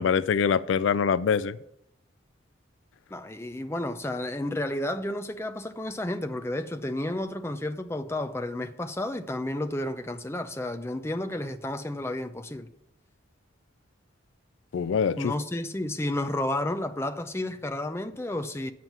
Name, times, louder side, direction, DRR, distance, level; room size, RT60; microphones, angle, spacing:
voice 1, 0.0-1.6 14.7-15.3, left 6 dB, 70° left, 0.3 m, -24 dB
voice 2, 3.1-12.7 15.2-18.7, left 1 dB, 15° left, 0.5 m, -31 dB
9.4 x 7.2 x 5.8 m
head